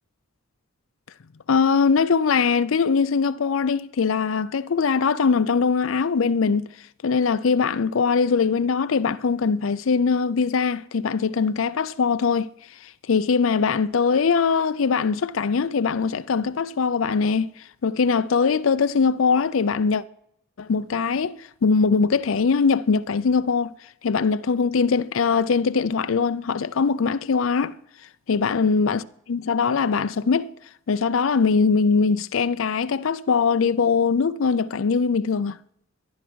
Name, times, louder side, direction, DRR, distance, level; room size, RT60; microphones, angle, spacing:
voice 1, 1.5-6.7 7.0-12.5 13.1-17.5 17.8-20.0 20.6-23.7 24.0-27.7 28.3-30.5 30.9-35.6, left 5 dB, 70° left, 0.5 m, -21 dB
14.5 x 10.5 x 6.2 m
head